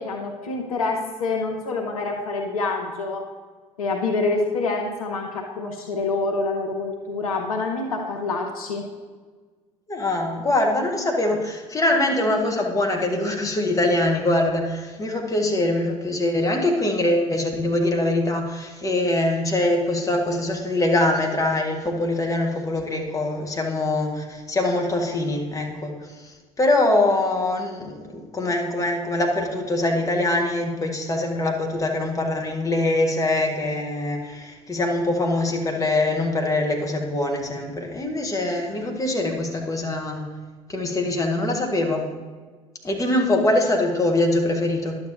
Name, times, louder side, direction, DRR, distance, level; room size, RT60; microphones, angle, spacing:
voice 1, 0.0-3.2 3.8-8.8, left 3 dB, 80° left, 2 dB, 0.8 m, -26 dB
voice 2, 9.9-40.3 40.7-42.0 42.8-45.0, left 2 dB, 20° left, 1 dB, 1.4 m, -23 dB
11.0 x 7.1 x 2.7 m, 1.4 s
figure-of-eight pair, 60°, 18 cm